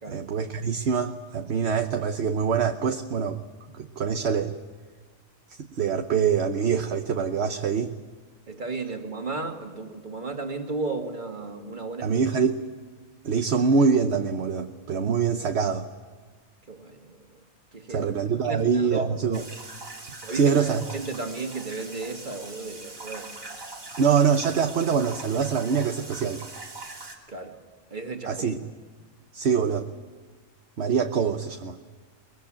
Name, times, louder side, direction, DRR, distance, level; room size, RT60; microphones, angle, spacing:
voice 1, 0.1-3.4 3.7-4.5 5.5-7.9 12.0-12.6 13.2-15.9 17.9-19.4 20.3-20.8 24.0-26.4 28.3-28.6 29.3-29.9 30.8-31.8, right 6 dB, 55° right, 6 dB, 1.2 m, -24 dB
voice 2, 8.5-12.1 16.7-17.4 17.7-18.1 18.4-19.5 20.2-23.3 27.3-27.6 27.9-28.5, right 3 dB, 35° right, 4 dB, 2.4 m, -34 dB
sound 1, 19.3-27.2, right 2 dB, 85° right, 3.7 m, -41 dB
23.5 x 21.5 x 8.8 m, 1.5 s
omnidirectional pair, 1.4 m